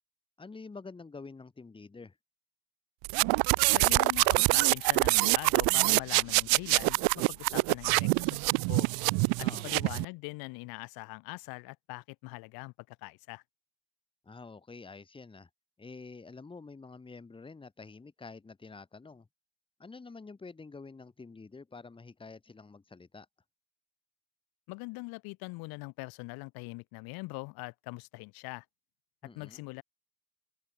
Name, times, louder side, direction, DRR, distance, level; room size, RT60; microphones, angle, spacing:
voice 1, 0.4-2.2 9.4-9.8 14.2-15.5 15.8-19.3 19.8-23.3 29.2-29.6, left 4 dB, 15° left, 2.4 m, -48 dB
sound 1, 3.0-10.1, right 32 dB, 80° right, 0.5 m, -25 dB
voice 2, 3.7-8.9 9.4-13.4 24.7-28.6 29.3-29.8, left 26 dB, 80° left, 2.9 m, -42 dB
open air
cardioid pair, 135°, 36 cm